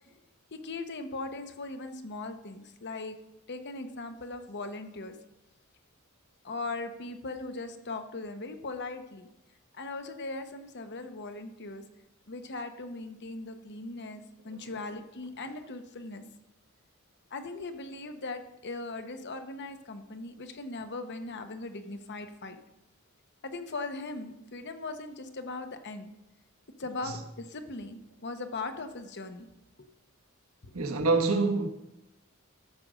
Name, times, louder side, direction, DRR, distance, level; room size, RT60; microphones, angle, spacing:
voice 1, 0.5-3.2 3.5-5.1 6.4-9.3 9.7-11.8 12.3-16.2 17.3-22.6 23.4-26.1 26.8-29.5 29.8-29.9 30.6-30.7, left 3 dB, 55° left, 1.0 m, -39 dB
voice 2, 30.7-31.7, right 3 dB, 75° right, 1.3 m, -26 dB
13.5 x 5.2 x 6.3 m
head